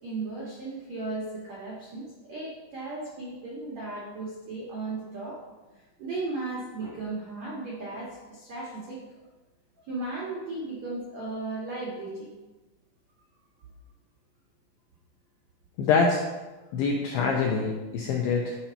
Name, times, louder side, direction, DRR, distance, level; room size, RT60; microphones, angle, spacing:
voice 1, 0.0-5.4 6.0-9.0 9.8-12.3, right 2 dB, 80° right, -5 dB, 1.5 m, -36 dB
voice 2, 15.8-16.2 16.7-18.6, left 5 dB, 85° left, 0 dB, 2.4 m, -25 dB
11.5 x 4.4 x 5.6 m, 1.2 s
omnidirectional pair, 5.8 m